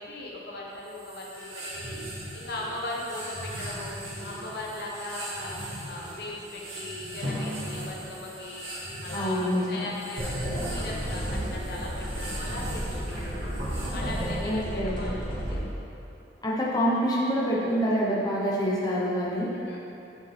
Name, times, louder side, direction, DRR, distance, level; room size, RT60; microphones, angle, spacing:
voice 1, 0.0-2.0 2.3-4.0 4.2-8.7 9.0-13.5 13.9-15.9 17.5-17.9 19.5-19.8, left 2 dB, 55° left, -3 dB, 1.1 m, -38 dB
sound 1, 0.8-14.7, right 1 dB, 80° right, 2.0 m, -40 dB
Drum, 7.2-9.9, left 1 dB, 60° right, 1.9 m, -38 dB
voice 2, 9.1-9.9 14.4-15.0 16.4-19.5, equal, 20° left, -5 dB, 1.0 m, -26 dB
sound 2, 10.2-15.6, equal, 45° right, 1.9 m, -32 dB
11.5 x 5.7 x 3.4 m, 2.8 s
head